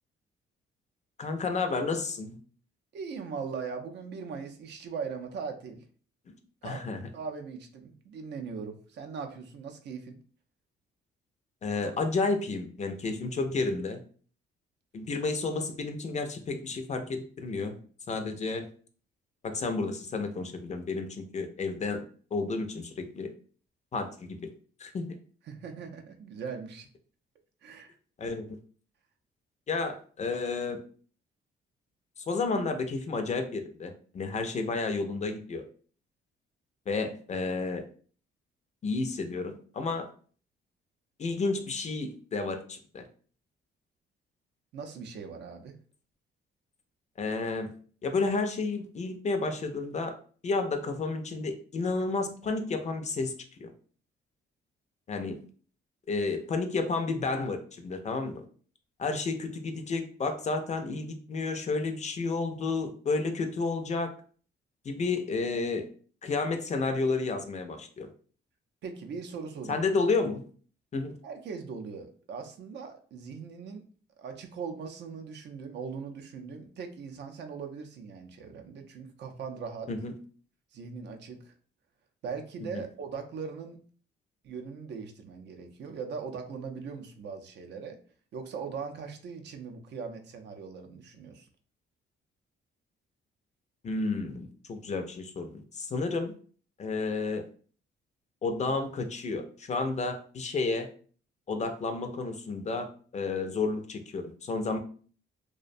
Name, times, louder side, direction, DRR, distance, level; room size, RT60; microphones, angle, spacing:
voice 1, 1.2-2.4 6.3-6.4 6.6-7.0 11.6-14.0 14.9-17.8 18.1-18.7 19.4-22.0 22.3-23.3 23.9-24.4 24.8-25.0 28.2-28.6 29.7-30.8 32.3-35.6 36.9-37.8 38.8-40.1 41.2-43.0 47.2-47.7 48.0-50.1 50.4-53.4 53.6-53.7 55.1-55.4 56.1-58.4 59.0-64.1 64.8-65.9 66.2-68.1 69.7-70.4 70.9-71.2 79.9-80.1 82.7-82.9 93.8-96.3 96.8-97.4 98.4-100.9 101.5-104.8, left 3 dB, 35° left, 7 dB, 0.4 m, -31 dB
voice 2, 2.9-5.8 6.6-6.8 7.1-10.2 25.5-26.9 27.6-27.9 44.7-45.8 68.8-69.8 71.2-73.8 74.2-79.9 80.7-81.5 82.2-83.8 84.4-88.0 88.3-91.5, right 5 dB, 60° right, 5 dB, 0.5 m, -40 dB
2.4 x 2.1 x 2.5 m, 0.43 s
cardioid pair, 90°, 20 cm